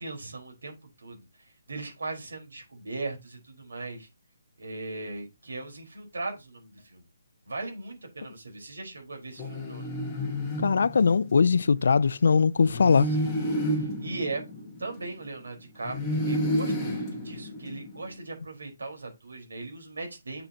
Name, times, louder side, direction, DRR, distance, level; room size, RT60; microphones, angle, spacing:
voice 1, 0.0-4.1 4.6-7.0 7.4-9.9 12.9-16.0 16.2-20.5, right 3 dB, 75° right, 4.4 m, -39 dB
sound 1, 9.4-11.5 12.6-15.3 15.8-18.1, equal, 5° left, 1.4 m, -31 dB
voice 2, 10.6-13.1, left 5 dB, 50° left, 0.4 m, -21 dB
7.6 x 6.7 x 2.9 m
hypercardioid pair, 180°, 0 cm